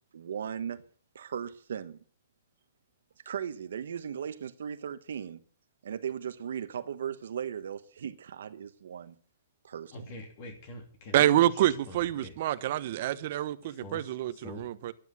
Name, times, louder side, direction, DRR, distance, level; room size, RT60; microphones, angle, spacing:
voice 1, 0.1-0.8 1.1-2.0 3.2-5.4 5.8-9.1 9.6-10.0, right 8 dB, 75° right, 1.2 m, -37 dB
voice 2, 9.9-11.4 11.9-12.0 12.2-12.3 13.8-14.0 14.4-14.6, left 2 dB, 40° left, 2.8 m, -43 dB
voice 3, 11.1-14.9, right 13 dB, 50° right, 1.1 m, -27 dB
12.0 x 9.7 x 7.9 m
hypercardioid pair, 160°, 0 cm